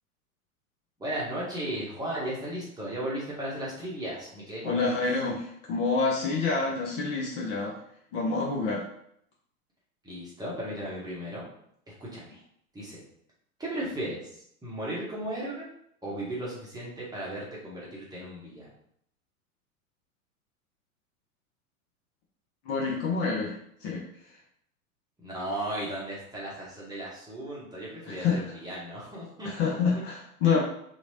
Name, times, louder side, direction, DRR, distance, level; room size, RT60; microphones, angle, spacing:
voice 1, 1.0-4.9 10.0-11.4 12.0-12.4 12.7-13.0 13.6-14.4 14.6-15.7 16.0-18.7 25.2-29.7, right 1 dB, 10° right, -7 dB, 1.0 m, -35 dB
voice 2, 4.6-7.7 8.1-8.8 22.6-23.5 23.8-24.0 28.0-28.4 29.4-30.6, left 4 dB, 40° left, -3 dB, 0.8 m, -27 dB
2.9 x 2.7 x 2.8 m, 0.70 s
figure-of-eight pair, 90°, 44 cm